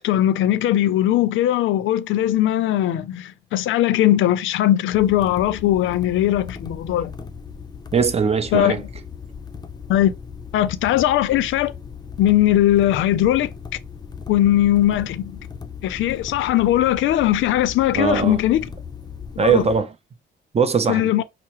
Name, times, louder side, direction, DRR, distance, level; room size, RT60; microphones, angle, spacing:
voice 1, 0.0-7.1 8.5-8.8 9.9-10.1 10.5-11.7 12.2-13.5 14.3-15.4 15.8-18.7 19.4-19.6 20.9-21.2, left 13 dB, 75° left, 0.5 m, -19 dB
sound 1, 4.9-19.8, left 5 dB, 20° left, 0.5 m, -38 dB
voice 2, 7.9-8.8 17.9-18.4 19.4-19.9 20.5-21.1, right 6 dB, 30° right, 0.6 m, -20 dB
5.5 x 2.0 x 2.9 m
cardioid pair, 90°, 20 cm